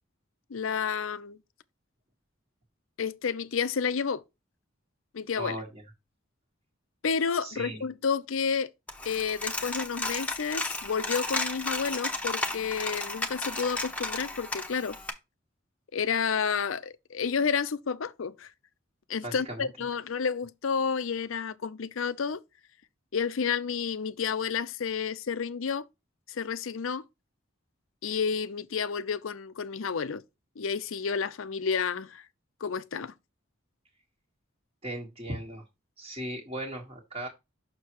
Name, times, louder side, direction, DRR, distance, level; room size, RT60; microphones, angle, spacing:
voice 1, 0.5-1.4 3.0-4.2 5.1-5.6 7.0-8.7 9.0-15.0 15.9-18.5 19.1-22.4 23.1-25.8 26.3-27.0 28.0-30.2 30.6-32.2 32.6-33.1, left 6 dB, 80° left, 0.6 m, -30 dB
voice 2, 7.4-7.8 19.2-19.7 34.8-35.6 36.0-37.3, right 1 dB, 30° right, 1.4 m, -37 dB
Coin (dropping), 8.9-15.1, left 2 dB, 5° left, 0.9 m, -33 dB
6.5 x 6.1 x 3.0 m
head